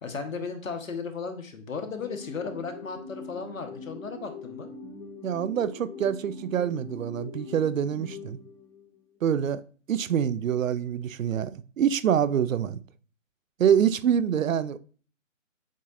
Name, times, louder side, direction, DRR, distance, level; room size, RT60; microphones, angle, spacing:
voice 1, 0.0-4.7, left 5 dB, 85° left, 1.0 m, -35 dB
sound 1, 1.8-9.0, left 4 dB, 35° left, 1.9 m, -43 dB
voice 2, 5.2-8.4 9.2-9.6 9.9-12.8 13.6-14.8, right 8 dB, 80° right, 0.5 m, -25 dB
7.3 x 2.8 x 2.4 m
figure-of-eight pair, 150°, 39 cm